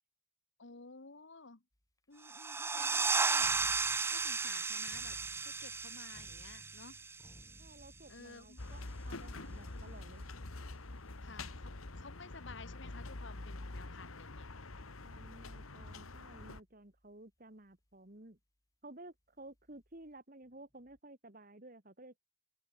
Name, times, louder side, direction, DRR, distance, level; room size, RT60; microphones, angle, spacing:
voice 1, 0.6-1.6 2.1-3.6 4.1-5.2 5.4-7.0 8.1-8.6 11.2-14.5, left 4 dB, 60° left, 1.3 m, -53 dB
sound 1, 1.7-1.8 3.4-17.1 17.6-18.0 19.4-21.0, equal, 15° left, 3.5 m, -62 dB
sound 2, 2.2-7.6, right 4 dB, 10° right, 0.3 m, -34 dB
voice 2, 2.7-3.1 7.6-10.3 15.0-18.4 18.8-22.2, right 2 dB, 40° right, 2.2 m, -54 dB
sound 3, 8.6-16.6, left 2 dB, 85° left, 1.8 m, -46 dB
open air
head